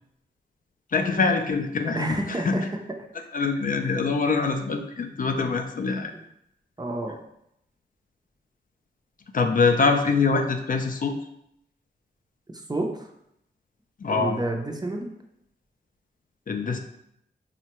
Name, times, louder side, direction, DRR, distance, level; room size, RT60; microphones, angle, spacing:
voice 1, 0.9-2.6 3.3-6.1 9.3-11.2 14.0-14.4 16.5-16.8, left 4 dB, 50° left, 5 dB, 0.4 m, -24 dB
voice 2, 2.0-2.6 6.1-6.2 6.8-7.2 12.5-13.1 14.1-15.1, right 2 dB, 20° right, 3 dB, 0.5 m, -29 dB
3.6 x 2.1 x 2.9 m, 0.77 s
cardioid pair, 55°, 19 cm